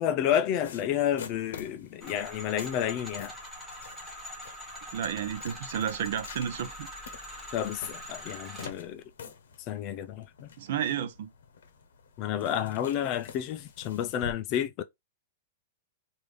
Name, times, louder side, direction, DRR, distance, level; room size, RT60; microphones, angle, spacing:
voice 1, 0.0-3.3 7.5-9.0 9.7-10.5 12.2-14.8, left 10 dB, 30° left, 0.4 m, -30 dB
sound 1, 0.6-14.3, left 6 dB, 85° left, 0.8 m, -48 dB
sound 2, 2.0-8.7, equal, ahead, 0.9 m, -43 dB
voice 2, 4.9-6.9 10.6-11.3, right 9 dB, 55° right, 0.6 m, -32 dB
3.2 x 2.5 x 3.5 m
supercardioid pair, 175°, 0 cm